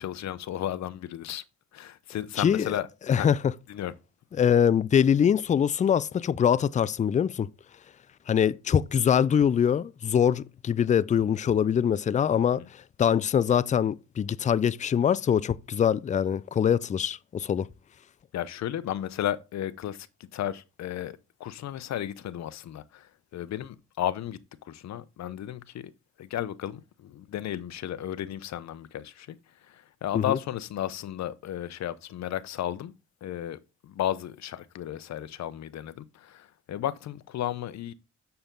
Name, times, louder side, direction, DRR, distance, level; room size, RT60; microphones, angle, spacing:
voice 1, 0.0-1.4 1.7-2.9 3.1-3.3 3.7-3.9 18.3-20.1 20.3-24.4 24.6-25.9 26.2-29.4 29.7-32.9 33.2-37.9, left 11 dB, 65° left, 0.8 m, -34 dB
voice 2, 2.4-2.8 3.1-3.5 4.4-7.5 8.3-17.7 30.1-30.4, left 8 dB, 25° left, 0.4 m, -23 dB
6.9 x 6.8 x 3.8 m
cardioid pair, 90°, 30 cm